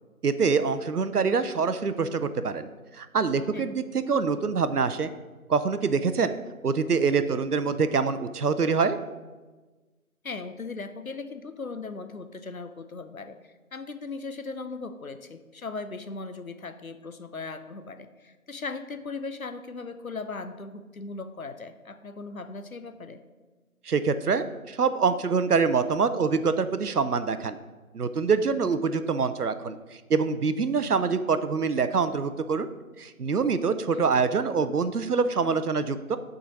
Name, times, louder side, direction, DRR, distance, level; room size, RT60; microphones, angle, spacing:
voice 1, 0.2-2.7 2.9-5.1 5.5-6.4 6.6-9.0 23.9-27.6 27.9-29.8 30.1-32.7 33.0-36.2, right 5 dB, 90° right, 11 dB, 0.7 m, -25 dB
voice 2, 10.2-23.2 33.9-34.1, left 4 dB, 65° left, 10 dB, 0.6 m, -38 dB
8.7 x 3.9 x 5.2 m, 1.3 s
figure-of-eight pair, 180°, 44 cm